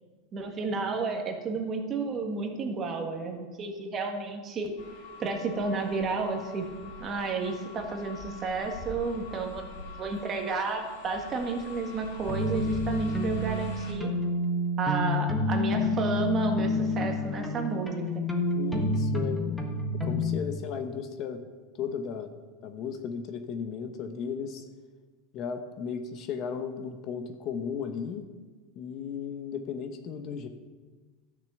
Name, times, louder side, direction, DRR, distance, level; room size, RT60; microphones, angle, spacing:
voice 1, 0.3-4.7 5.2-6.7 7.0-14.1 14.8-18.2, right 4 dB, 30° right, 3 dB, 1.8 m, -32 dB
sound 1, 4.8-13.9, left 3 dB, 85° left, 3.4 m, -43 dB
sound 2, 12.3-20.4, left 1 dB, ahead, 1.5 m, -28 dB
voice 2, 18.5-19.4 20.0-21.4 21.8-22.3 22.6-24.6 25.3-28.2 28.7-30.5, left 7 dB, 45° left, 7 dB, 1.0 m, -35 dB
12.0 x 6.7 x 6.9 m, 1.4 s
supercardioid pair, 140°, 0 cm